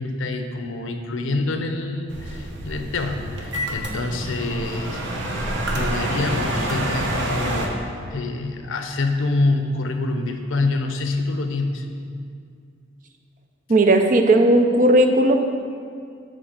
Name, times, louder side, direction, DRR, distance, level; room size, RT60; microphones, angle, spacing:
voice 1, 0.0-5.0 5.7-11.9, left 2 dB, 80° left, 6 dB, 0.7 m, -26 dB
sound 1, 2.1-7.7, right 1 dB, 60° right, 1.1 m, -27 dB
voice 2, 13.7-15.3, right 1 dB, 40° right, 5 dB, 0.6 m, -16 dB
10.5 x 3.7 x 6.5 m, 2.3 s
head